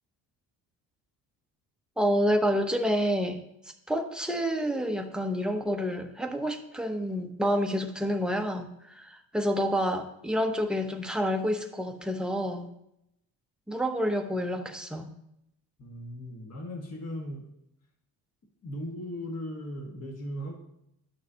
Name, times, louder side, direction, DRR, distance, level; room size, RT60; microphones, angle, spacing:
voice 1, 2.0-3.4 3.9-12.7 13.7-15.1, equal, ahead, 4 dB, 0.8 m, -28 dB
voice 2, 15.8-17.4 18.6-20.5, equal, 40° left, 1 dB, 1.7 m, -37 dB
11.5 x 6.4 x 2.9 m, 0.80 s
cardioid pair, 95°, 39 cm